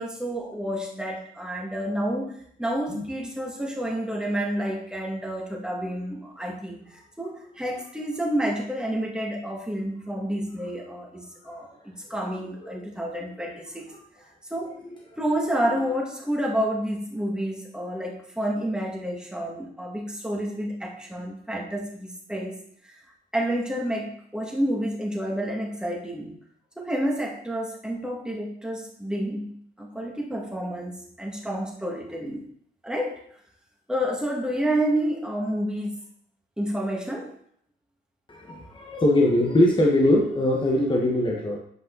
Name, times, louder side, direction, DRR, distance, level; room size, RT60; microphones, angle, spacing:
voice 1, 0.0-13.9 14.5-14.7 15.2-22.5 22.8-22.9 23.3-26.3 26.8-32.5 32.8-33.2 33.9-36.0 36.6-37.3, equal, 5° right, -1 dB, 2.0 m, -29 dB
voice 2, 15.3-15.8 38.3-41.6, left 1 dB, 25° left, -1 dB, 1.3 m, -23 dB
8.3 x 5.4 x 4.0 m, 0.65 s
cardioid pair, 90°, 20 cm